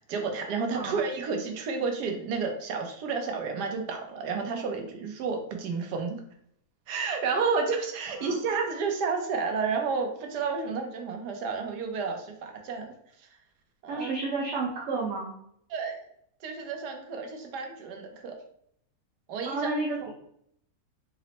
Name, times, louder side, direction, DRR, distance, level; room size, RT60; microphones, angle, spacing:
voice 1, 0.0-6.2 6.9-12.9 13.8-14.1 15.7-16.0 16.4-18.4 19.3-19.7, right 5 dB, 90° right, 3 dB, 1.3 m, -31 dB
voice 2, 13.9-15.4 19.4-20.1, right 3 dB, 60° right, -3 dB, 0.8 m, -31 dB
4.0 x 2.0 x 4.1 m, 0.70 s
omnidirectional pair, 1.7 m